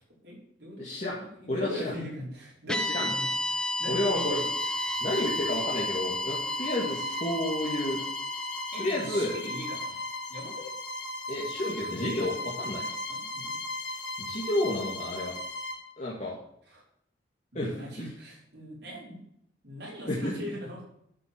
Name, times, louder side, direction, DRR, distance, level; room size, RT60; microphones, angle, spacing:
voice 1, 0.2-4.4 4.8-5.0 8.7-10.0 10.3-10.7 13.1-13.6 16.2-16.3 16.7-16.8 17.5-19.2 19.6-20.9, equal, 60° right, -4 dB, 5.0 m, -40 dB
voice 2, 0.8-1.2 1.5-1.9 2.8-3.0 3.9-4.4 5.0-8.0 8.8-9.3 11.3-12.8 14.2-15.3 16.0-16.4 17.5-17.8 20.1-20.3, left 1 dB, 40° left, -5 dB, 2.0 m, -31 dB
sound 1, 2.7-11.0, left 1 dB, 5° left, 0.6 m, -33 dB
Bowed string instrument, 4.0-15.9, left 1 dB, 90° left, 2.0 m, -37 dB
11.0 x 6.0 x 7.5 m, 0.72 s
head